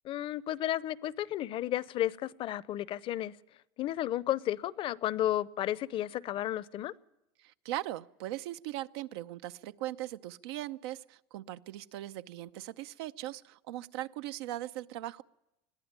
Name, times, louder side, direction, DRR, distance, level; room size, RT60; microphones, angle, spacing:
voice 1, 0.0-3.3 3.8-6.9, left 13 dB, 40° left, 0.6 m, -33 dB
voice 2, 7.4-15.2, right 15 dB, 80° right, 0.7 m, -39 dB
21.5 x 14.0 x 8.7 m
supercardioid pair, 130°, 13 cm